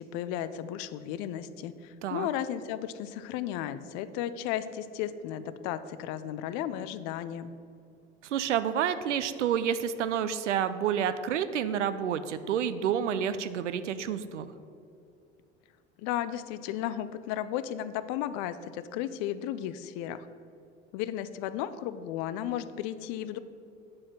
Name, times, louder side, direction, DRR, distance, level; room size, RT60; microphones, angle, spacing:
voice 1, 0.0-7.5 16.0-20.3 20.9-23.4, left 11 dB, 55° left, 13 dB, 0.5 m, -34 dB
voice 2, 8.2-14.5, right 8 dB, 85° right, 12 dB, 0.5 m, -29 dB
8.4 x 5.0 x 5.7 m, 2.5 s
figure-of-eight pair, 70°, 35 cm